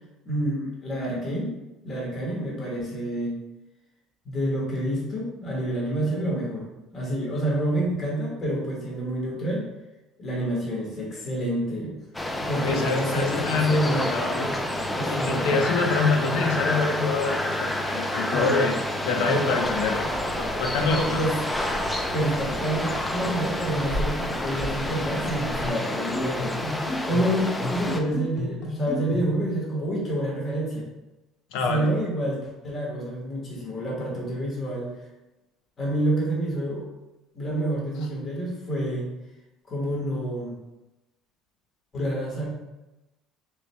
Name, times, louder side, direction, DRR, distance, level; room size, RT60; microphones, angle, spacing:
voice 1, 0.2-1.6 1.8-3.4 4.2-6.7 6.9-9.6 10.2-12.0 12.4-14.2 15.0-15.6 18.3-18.5 19.3-19.5 20.8-21.4 22.1-30.9 31.7-34.9 35.8-36.9 37.3-39.1 39.7-40.5 41.9-42.5, right 1 dB, 30° left, -3 dB, 1.3 m, -28 dB
sound 1, 12.1-28.0, left 1 dB, 10° left, 0.3 m, -29 dB
voice 2, 12.6-14.6 15.1-18.8 19.0-21.2 31.5-31.9, left 4 dB, 80° left, 3 dB, 0.7 m, -26 dB
sound 2, 19.6-25.7, right 1 dB, 70° right, 0.9 m, -37 dB
sound 3, 25.6-29.5, left 2 dB, 65° left, 1.1 m, -32 dB
6.1 x 3.2 x 2.2 m, 0.98 s
cardioid pair, 155°, 0 cm